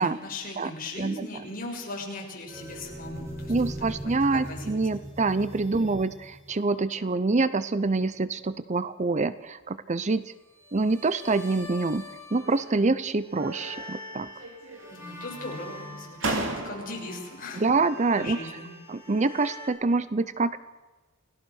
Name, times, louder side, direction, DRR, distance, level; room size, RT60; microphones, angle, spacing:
voice 1, 0.0-3.5 4.0-4.7 5.7-6.0 14.9-17.6 18.2-18.7, left 2 dB, 45° left, -1 dB, 6.6 m, -38 dB
sound 1, 2.5-6.7 10.5-12.9 13.2-19.7, equal, 15° right, 7.2 m, -42 dB
voice 2, 3.5-10.3 10.7-14.3 17.5-18.4 18.9-20.6, right 3 dB, 35° right, 15 dB, 0.6 m, -26 dB
sound 2, 12.3-12.9 13.3-14.1 14.4-15.1 15.8-15.9 16.2-17.2, right 2 dB, 65° right, 3.1 m, -35 dB
29.5 x 17.5 x 6.5 m, 1.2 s
head